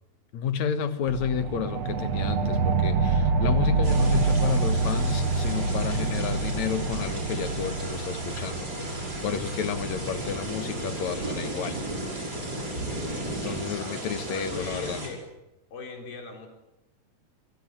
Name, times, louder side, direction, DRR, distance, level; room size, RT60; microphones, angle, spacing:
voice 1, 0.3-11.9 13.4-15.0, left 7 dB, 60° left, 10 dB, 2.4 m, -31 dB
sound 1, 1.1-12.2, right 4 dB, 50° right, 2.7 m, -27 dB
sound 2, 3.8-15.1, right 1 dB, 25° right, 5.9 m, -34 dB
voice 2, 13.5-14.0 14.3-15.2 15.7-16.5, left 4 dB, 75° left, 3 dB, 5.8 m, -41 dB
24.5 x 22.5 x 9.0 m, 0.93 s
omnidirectional pair, 4.3 m